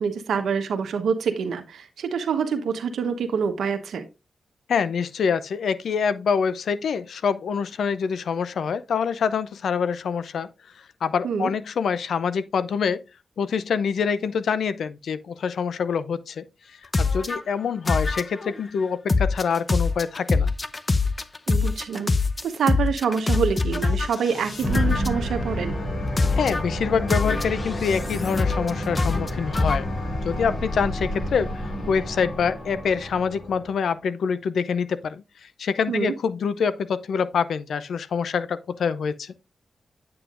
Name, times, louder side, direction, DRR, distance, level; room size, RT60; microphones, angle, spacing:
voice 1, 0.0-4.1 11.2-11.5 21.5-22.1 22.4-25.8 35.9-36.1, right 6 dB, 90° right, 1.0 m, -26 dB
voice 2, 4.7-10.5 11.0-13.0 13.4-16.4 17.0-20.5 26.4-29.9 30.2-39.3, left 6 dB, 80° left, 0.5 m, -25 dB
sound 1, 16.9-17.4 17.9-18.6 19.1-24.1 24.7-25.3 26.2-26.6 27.1-28.7 28.9-29.8, left 3 dB, 35° left, 0.6 m, -23 dB
sound 2, 23.7-33.9, left 1 dB, 60° left, 2.4 m, -30 dB
8.7 x 7.0 x 2.4 m
cardioid pair, 60°, 0 cm